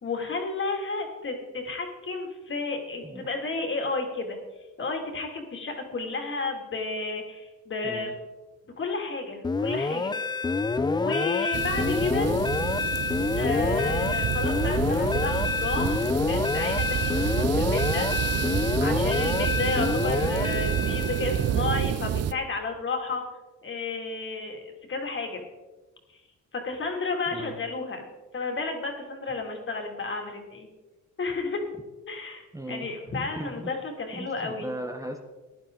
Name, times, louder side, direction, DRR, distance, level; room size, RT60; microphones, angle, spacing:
voice 1, 0.0-4.4 4.8-8.1 8.8-10.1 10.9-12.3 13.4-18.4 18.8-23.2 23.6-24.6 24.9-25.4 26.5-28.1 28.3-30.7 31.2-31.6 32.1-34.7, left 3 dB, 40° left, 2 dB, 2.6 m, -32 dB
voice 2, 7.8-8.1 27.3-27.6 32.5-32.9 33.3-33.7 34.1-35.2, right 1 dB, 10° right, 3 dB, 1.1 m, -37 dB
sound 1, 9.4-21.6, left 4 dB, 15° left, 0.5 m, -27 dB
sound 2, 11.5-22.3, right 10 dB, 55° right, 0.6 m, -29 dB
16.0 x 10.5 x 3.9 m, 1.2 s
cardioid pair, 90°, 30 cm